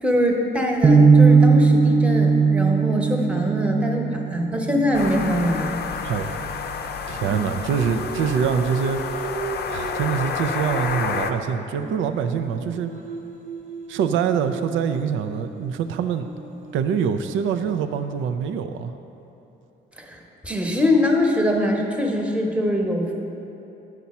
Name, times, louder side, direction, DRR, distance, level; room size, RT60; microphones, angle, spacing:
voice 1, 0.0-5.7 20.0-23.1, left 1 dB, 5° right, 1 dB, 0.9 m, -23 dB
sound 1, 0.8-6.9, right 4 dB, 20° right, 0.5 m, -19 dB
sound 2, 4.9-11.3, left 6 dB, 55° left, 0.5 m, -30 dB
voice 2, 6.0-6.3 7.1-9.0 9.7-12.9 13.9-16.3 16.7-18.9, right 7 dB, 80° right, 9 dB, 0.4 m, -24 dB
Singing, 7.2-11.5 11.8-17.8, right 5 dB, 40° right, 0.9 m, -37 dB
9.4 x 5.7 x 4.2 m, 3.0 s
cardioid pair, 90°, 20 cm